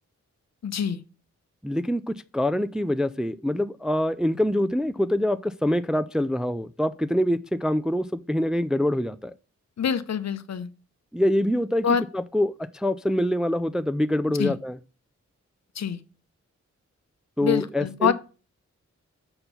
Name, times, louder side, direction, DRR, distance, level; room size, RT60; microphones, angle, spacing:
voice 1, 0.6-1.0 9.8-10.7 11.8-12.0 14.4-14.6 15.8-16.0 17.4-18.1, left 7 dB, 65° left, 0.7 m, -25 dB
voice 2, 1.6-9.3 11.1-11.9 12.1-14.8 17.4-18.1, left 1 dB, ahead, 0.3 m, -25 dB
6.7 x 4.3 x 5.6 m
wide cardioid pair, 130°, 30 cm